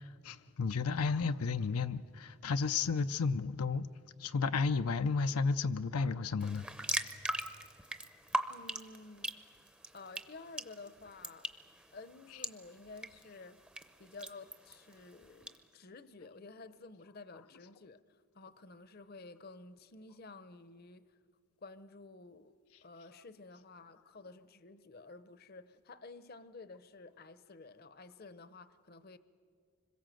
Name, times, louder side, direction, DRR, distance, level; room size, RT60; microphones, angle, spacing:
voice 1, 0.0-3.9 4.2-6.7 12.3-12.4, left 4 dB, 85° left, 0.5 m, -32 dB
sound 1, 6.4-15.6, right 1 dB, 5° right, 0.6 m, -41 dB
voice 2, 8.5-9.3 9.9-11.5 11.9-13.6 14.0-18.0 18.3-21.1 21.6-22.6 22.8-29.2, left 3 dB, 45° left, 0.7 m, -52 dB
25.5 x 21.5 x 7.7 m
head